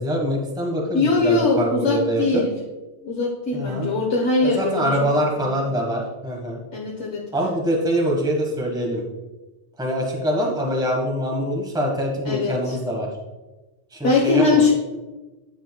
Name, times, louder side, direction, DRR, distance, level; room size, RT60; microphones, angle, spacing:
voice 1, 0.0-2.4 3.5-3.9 4.4-6.6 7.3-9.0 9.8-13.1 13.9-14.6, equal, 5° right, -1 dB, 1.2 m, -24 dB
voice 2, 0.9-2.5 3.0-4.9 5.4-5.6 6.7-7.2 12.2-12.8 14.0-14.7, left 3 dB, 75° left, -3 dB, 1.4 m, -21 dB
10.5 x 6.3 x 2.2 m, 1.2 s
omnidirectional pair, 1.2 m